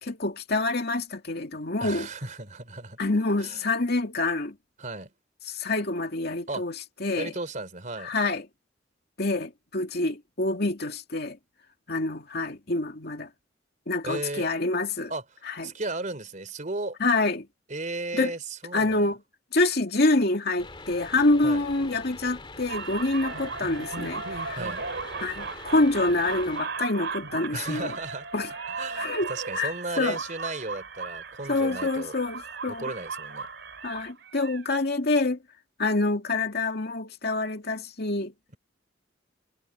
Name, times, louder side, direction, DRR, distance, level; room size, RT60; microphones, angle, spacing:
voice 1, 0.0-2.1 3.0-4.6 5.5-6.7 7.0-7.3 8.0-8.4 9.2-11.4 11.9-13.3 13.9-15.1 15.5-15.7 17.0-17.5 18.1-18.3 18.7-19.2 19.5-24.6 25.2-27.9 28.3-28.5 29.0-29.3 29.6-30.2 31.5-32.9 33.8-35.4 35.8-38.3, left 2 dB, 60° left, 2.5 m, -26 dB
voice 2, 1.8-3.0 3.4-3.7 4.8-5.1 6.5-6.7 7.2-8.1 14.0-14.5 15.1-17.0 17.7-19.1 21.4-21.6 24.5-24.9 27.5-28.3 28.7-32.2 32.7-33.5, right 2 dB, 45° right, 3.5 m, -35 dB
sound 1, 20.6-26.6, left 3 dB, 25° left, 2.3 m, -44 dB
sound 2, 22.7-34.7, right 4 dB, 70° right, 3.6 m, -36 dB
head